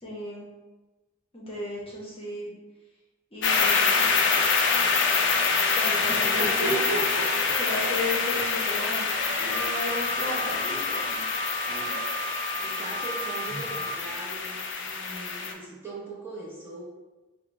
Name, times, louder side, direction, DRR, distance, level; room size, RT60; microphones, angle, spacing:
voice 1, 0.0-0.5 1.3-2.5 3.3-4.1 5.8-6.9 7.6-11.2 11.6-12.0, left 1 dB, 30° left, -5 dB, 0.8 m, -35 dB
bright ambient effect, 3.4-15.5, left 4 dB, 65° left, 0.4 m, -26 dB
sound 1, 6.0-12.2 13.2-14.3, right 2 dB, 45° right, 0.8 m, -36 dB
Wind instrument woodwind instrument, 9.5-14.0, right 1 dB, 85° right, 0.4 m, -35 dB
voice 2, 12.6-16.8, right 2 dB, 10° right, -8 dB, 0.7 m, -41 dB
2.8 x 2.1 x 4.0 m, 1.2 s
head